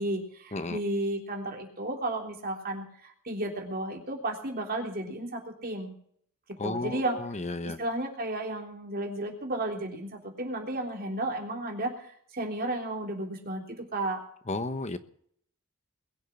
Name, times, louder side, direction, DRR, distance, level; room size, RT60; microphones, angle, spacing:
voice 1, 0.0-5.9 6.6-7.2 7.6-14.2, right 1 dB, 45° right, 2 dB, 3.4 m, -33 dB
voice 2, 6.6-7.8 14.5-15.0, left 2 dB, 30° left, 10 dB, 1.1 m, -33 dB
21.5 x 7.4 x 7.1 m, 0.64 s
head